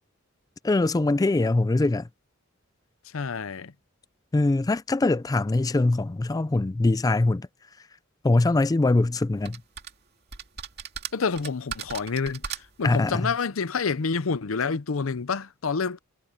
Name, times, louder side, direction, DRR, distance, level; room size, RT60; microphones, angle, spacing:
voice 1, 0.6-2.1 4.3-7.5 8.2-9.6 12.8-13.3, left 2 dB, 20° left, 0.3 m, -22 dB
voice 2, 3.1-3.7 11.1-16.0, left 5 dB, 85° left, 0.7 m, -28 dB
sound 1, 9.4-9.9 10.3-12.9, right 8 dB, 55° right, 2.4 m, -37 dB
head